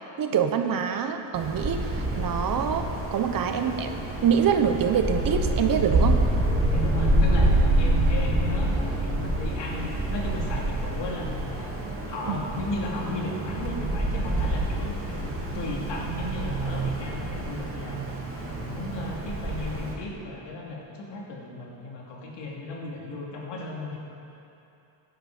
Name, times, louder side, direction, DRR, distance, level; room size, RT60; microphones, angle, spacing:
voice 1, 0.2-6.2 12.3-12.4, right 7 dB, 45° right, 6 dB, 1.0 m, -25 dB
Wind, 1.3-19.9, right 1 dB, 25° right, 2.5 m, -27 dB
voice 2, 6.7-11.7 12.1-18.0 18.3-24.0, left 2 dB, 60° left, -3 dB, 2.9 m, -35 dB
14.5 x 10.5 x 5.1 m, 2.8 s
cardioid pair, 110°, 48 cm